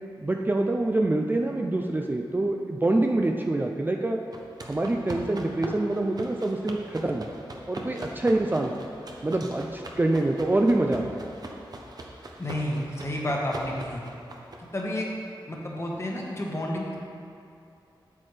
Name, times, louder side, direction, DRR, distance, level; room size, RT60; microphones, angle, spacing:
voice 1, 0.2-4.2 4.6-7.3 7.7-8.7 9.2-11.2, right 2 dB, 20° right, 1 dB, 0.4 m, -25 dB
sound 1, 4.3-14.8, right 2 dB, 50° right, 0.9 m, -41 dB
voice 2, 12.4-14.0 14.7-15.1 15.5-17.0, left 1 dB, 35° left, -2 dB, 1.3 m, -30 dB
8.4 x 7.7 x 3.3 m, 2.6 s
wide cardioid pair, 95°, 9 cm